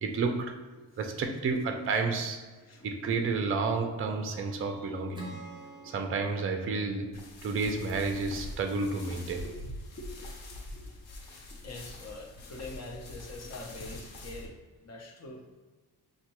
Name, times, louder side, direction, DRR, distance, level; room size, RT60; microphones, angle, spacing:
voice 1, 0.0-0.6 1.0-2.5 2.8-5.3 5.8-9.4, right 4 dB, 35° right, 5 dB, 0.5 m, -31 dB
voice 2, 2.7-3.1 5.7-5.9 9.4-9.5 10.0-10.3 10.7-10.8 11.5-14.5 14.8-15.6, left 2 dB, 45° left, 1 dB, 0.8 m, -45 dB
Acoustic guitar / Strum, 5.1-8.6, right 2 dB, 10° right, 0.9 m, -48 dB
sound 1, 7.1-14.5, left 1 dB, 80° left, 0.8 m, -44 dB
6.3 x 2.2 x 3.0 m, 1.3 s
cardioid pair, 120°, 38 cm